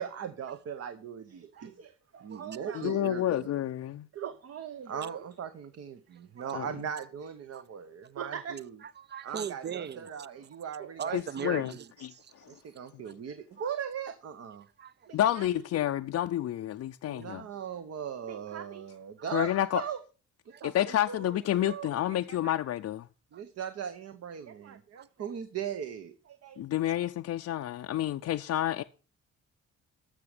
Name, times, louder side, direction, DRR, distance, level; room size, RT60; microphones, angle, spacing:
voice 1, 0.0-3.5 4.1-8.8 9.2-11.5 12.5-14.7 15.1-15.6 17.1-20.0 20.5-22.5 23.3-26.6, right 8 dB, 55° right, 0.9 m, -39 dB
voice 2, 2.7-4.1 6.5-6.7 11.1-11.7 12.4-12.5 12.9-13.0 15.1-17.5 19.3-19.8 20.6-23.1 26.6-28.8, left 12 dB, 55° left, 0.5 m, -29 dB
voice 3, 6.1-6.5 7.5-7.6 8.8-10.3 11.0-13.1 13.6-13.7 14.8-15.2 20.5-20.6 23.3-23.4 25.0-25.1, right 7 dB, 35° right, 0.5 m, -40 dB
13.5 x 6.2 x 4.9 m
cardioid pair, 90°, 30 cm